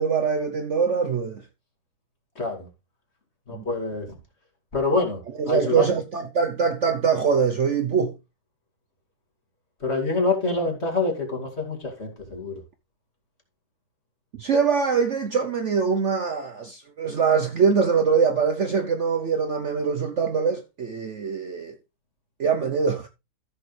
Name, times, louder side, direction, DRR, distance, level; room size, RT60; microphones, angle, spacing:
voice 1, 0.0-1.4 3.5-3.6 5.4-8.1 14.4-21.7 22.4-23.1, right 6 dB, 55° right, 1.0 m, -23 dB
voice 2, 2.4-2.7 3.5-4.2 4.7-5.2 5.5-5.9 9.8-12.6, left 3 dB, 40° left, 2.8 m, -26 dB
14.0 x 6.9 x 3.2 m
omnidirectional pair, 1.8 m